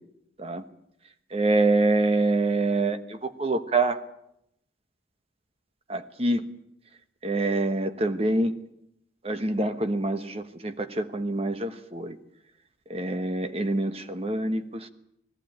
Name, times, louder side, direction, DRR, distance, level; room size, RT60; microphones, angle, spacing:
voice 1, 1.3-4.0 5.9-6.4 7.2-8.5 9.2-12.2 12.9-14.9, right 2 dB, 30° right, 9 dB, 1.1 m, -26 dB
19.5 x 15.0 x 9.1 m, 0.77 s
head